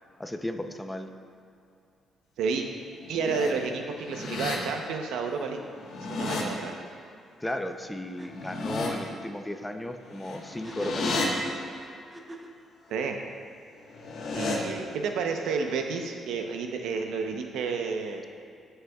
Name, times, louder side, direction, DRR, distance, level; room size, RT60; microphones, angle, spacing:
voice 1, 0.2-1.1 7.4-11.3, left 1 dB, 10° left, 6 dB, 0.6 m, -35 dB
sound 1, 2.9-3.5 3.9-4.6 5.7-6.4 8.2-8.9 10.1-11.3 13.8-14.6, left 3 dB, 70° left, 1.4 m, -33 dB
voice 2, 3.1-5.6 6.0-6.8 12.9-13.2 14.3-18.2, right 5 dB, 85° right, 4 dB, 0.8 m, -30 dB
sound 2, 7.8-7.9 8.2-8.3 10.5-12.6, right 2 dB, 20° right, 0.8 m, -44 dB
17.0 x 6.6 x 2.4 m, 2.5 s
cardioid pair, 90°, 0 cm